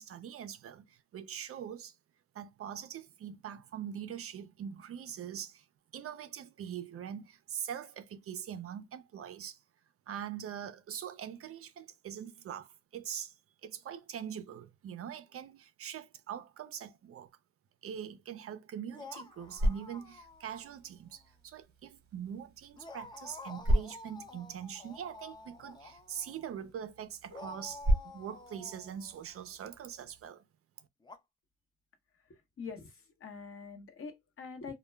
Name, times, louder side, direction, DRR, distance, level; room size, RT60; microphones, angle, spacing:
voice 1, 0.0-2.0 2.3-5.7 5.9-9.6 10.1-13.3 13.6-17.3 17.8-30.4, right 9 dB, 50° right, 0.4 m, -43 dB
sound 1, 18.9-20.8 21.1-21.2 22.8-26.6 27.3-29.7 31.0-31.2, left 3 dB, 15° left, 0.4 m, -50 dB
sound 2, 19.2-30.3, equal, 35° right, 0.9 m, -37 dB
voice 2, 32.3-34.8, left 5 dB, 45° left, 0.9 m, -45 dB
2.1 x 2.1 x 3.2 m
cardioid pair, 90°, 30 cm